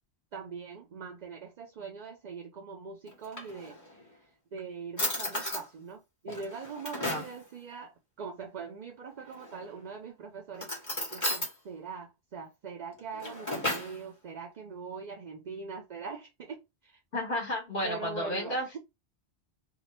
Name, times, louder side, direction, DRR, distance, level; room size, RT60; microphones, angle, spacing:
voice 1, 0.3-3.8 4.2-17.0 17.8-18.8, right 5 dB, 55° right, 0.5 m, -42 dB
Drawer open or close, 3.1-4.0 4.6-4.7 5.0-5.7 6.3-7.4 9.2-9.8 10.5-11.5 12.9-14.0, left 1 dB, 20° left, 1.0 m, -34 dB
voice 2, 17.1-18.8, left 1 dB, 60° left, 1.2 m, -32 dB
2.7 x 2.2 x 3.2 m
omnidirectional pair, 1.1 m